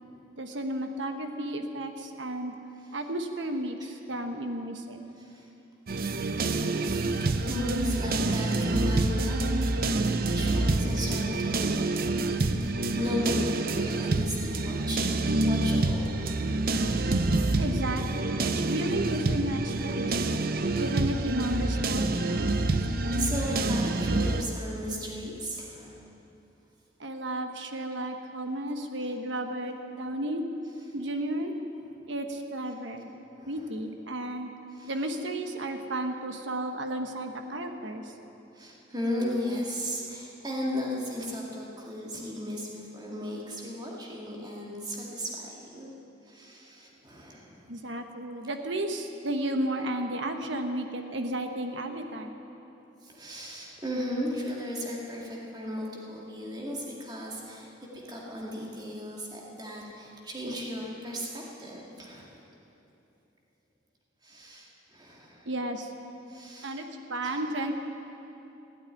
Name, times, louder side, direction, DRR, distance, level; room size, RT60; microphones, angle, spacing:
voice 1, 0.4-2.5 2.9-5.0 17.6-20.3 20.8-22.2 27.0-30.4 30.9-31.6 32.1-33.1 33.5-34.5 34.8-38.1 47.7-52.3 65.4-65.9 66.6-67.7, right 1 dB, 70° right, 5 dB, 1.2 m, -33 dB
voice 2, 5.2-5.5 7.1-17.4 20.1-20.8 22.1-26.1 33.4-33.6 34.7-34.9 38.5-45.9 46.2-47.7 53.0-62.3 64.2-65.5 66.3-66.8 67.2-67.4, equal, 20° right, -2 dB, 2.1 m, -36 dB
sound 1, 5.9-24.4, right 2 dB, 50° right, 0.6 m, -27 dB
16.5 x 8.9 x 9.5 m, 2.9 s
head